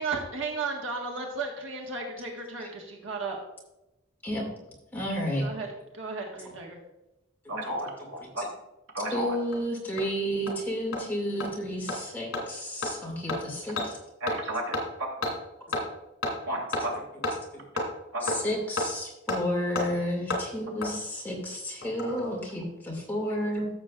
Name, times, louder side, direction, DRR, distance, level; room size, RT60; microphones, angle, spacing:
voice 1, 0.0-3.4 5.4-5.7 5.9-6.8, right 4 dB, 70° right, -1 dB, 1.5 m, -34 dB
voice 2, 4.9-5.5 8.4-8.5 9.1-14.0 17.5-17.6 18.2-23.7, equal, 10° left, -3 dB, 2.3 m, -31 dB
voice 3, 7.5-8.4 8.9-9.4 14.2-14.7 15.0-15.1 16.4-16.9 18.1-18.4, right 1 dB, 90° right, 0 dB, 2.7 m, -32 dB
Hammer, 9.0-9.1 9.5-9.6 10.0-10.1 10.5-10.6 10.9-11.0 11.4-11.5 11.9-12.0 12.3-12.4 12.8-12.9 13.3-13.4 13.8-13.9 14.3-14.4 14.7-14.8 15.2-15.3 15.7-15.8 16.2-16.3 16.7-16.8 17.2-17.3 17.8-17.9 18.3-18.4 18.8-18.9 19.3-19.4 19.8-19.9 20.3-20.4 20.8-20.9 21.8-22.2 22.5-22.6, left 2 dB, 75° left, 2.7 m, -29 dB
14.0 x 7.3 x 2.5 m, 0.93 s
head